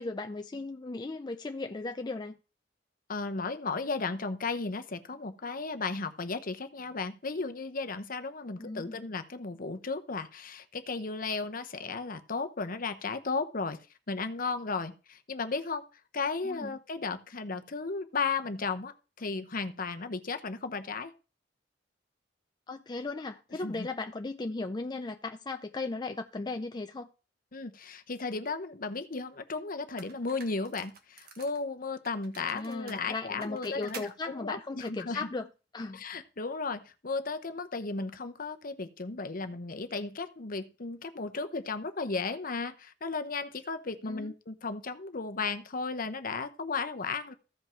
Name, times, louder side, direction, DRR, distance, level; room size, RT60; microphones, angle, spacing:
voice 1, 0.0-2.4 8.6-9.0 16.4-16.8 22.7-27.1 32.5-35.5 35.7-36.0 44.1-44.3, left 3 dB, 25° left, 0.4 m, -37 dB
voice 2, 3.1-13.8 14.1-15.8 16.1-21.1 23.6-23.9 27.5-35.3 35.9-47.3, left 4 dB, 50° left, 0.9 m, -35 dB
sound 1, 29.3-29.4 30.0-31.6 32.1-34.2, right 5 dB, 55° right, 1.5 m, -49 dB
15.0 x 5.3 x 4.5 m
head